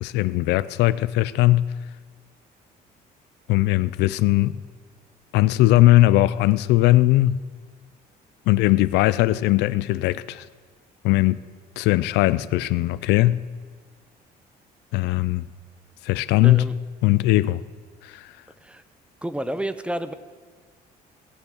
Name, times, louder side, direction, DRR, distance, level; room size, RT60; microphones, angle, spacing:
voice 1, 0.0-1.7 3.5-4.5 5.3-7.4 8.5-10.4 11.0-11.4 11.8-13.4 14.9-15.4 16.0-16.7 17.0-17.6 18.0-18.2, left 16 dB, 90° left, 0.4 m, -19 dB
voice 2, 16.4-16.7 18.6-18.8 19.2-20.1, right 1 dB, 5° right, 0.6 m, -29 dB
17.5 x 7.0 x 7.9 m
cardioid pair, 110°, 17 cm